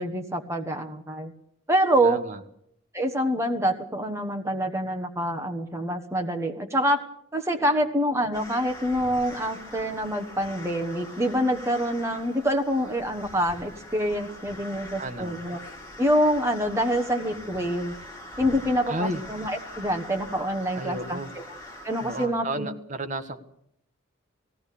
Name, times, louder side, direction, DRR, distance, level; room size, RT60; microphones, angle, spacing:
voice 1, 0.0-1.3 1.7-2.2 2.9-7.0 7.3-15.6 16.0-17.9 18.4-21.4 21.8-22.7, equal, 15° right, 4 dB, 1.2 m, -26 dB
voice 2, 2.0-2.4 15.0-15.4 18.8-19.2 20.7-21.3 22.0-23.4, right 1 dB, 35° right, 7 dB, 1.3 m, -32 dB
sound 1, 8.3-22.3, left 1 dB, 15° left, 4.0 m, -43 dB
19.0 x 16.5 x 8.4 m, 0.72 s
head